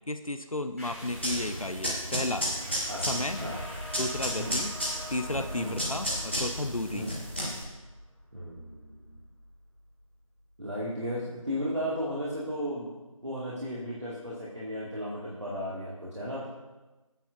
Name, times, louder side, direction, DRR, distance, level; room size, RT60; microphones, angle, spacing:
voice 1, 0.1-2.5 3.1-3.5 4.0-4.8 5.1-7.1, left 2 dB, 75° left, 8 dB, 0.8 m, -33 dB
sound 1, 0.8-10.0, equal, 25° right, 3.7 m, -43 dB
sound 2, 1.1-7.6, equal, 20° left, 1.4 m, -33 dB
voice 2, 2.9-3.6 4.4-4.6 5.5-5.8 6.9-7.1 8.3-9.2 10.6-12.9 13.2-16.5, equal, 55° right, -7 dB, 2.2 m, -35 dB
15.0 x 9.1 x 2.6 m, 1.1 s
figure-of-eight pair, 175°, 18 cm